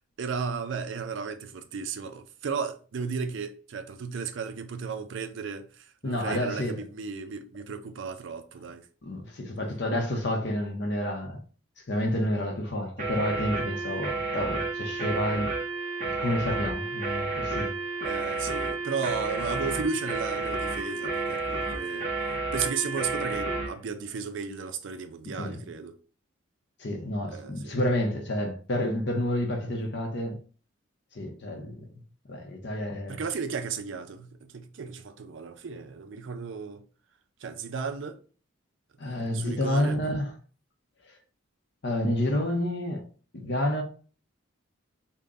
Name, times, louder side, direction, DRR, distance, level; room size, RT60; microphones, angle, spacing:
voice 1, 0.2-8.8 18.0-22.1 22.5-25.9 27.3-27.8 33.1-36.8 37.4-38.2 39.2-40.0, right 5 dB, 65° right, 0.4 m, -34 dB
voice 2, 6.0-6.8 9.0-11.4 11.9-15.5 16.0-17.8 25.2-25.6 26.8-30.4 31.1-31.9 32.3-33.2 39.0-40.3 41.8-43.0 43.3-43.8, left 1 dB, 55° left, 0.7 m, -29 dB
sound 1, 13.0-23.7, right 3 dB, 40° right, 0.9 m, -31 dB
3.7 x 2.1 x 3.7 m
head